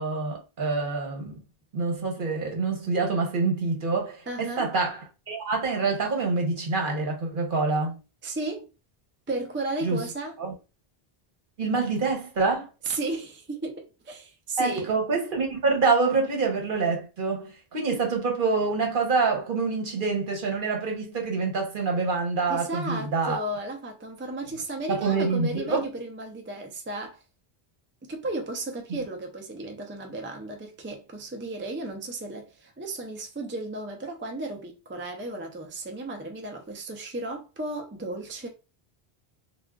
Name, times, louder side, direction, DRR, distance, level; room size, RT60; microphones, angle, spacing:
voice 1, 0.0-1.4 1.7-8.0 9.8-10.0 10.4-10.5 11.6-12.7 14.6-23.4 24.9-25.9 28.9-29.0, right 4 dB, 55° right, 1.0 m, -26 dB
voice 2, 4.3-4.7 8.2-8.7 9.3-10.4 12.8-14.9 22.5-27.2 28.1-38.5, right 2 dB, 20° right, 0.3 m, -34 dB
3.5 x 2.4 x 2.2 m
omnidirectional pair, 1.0 m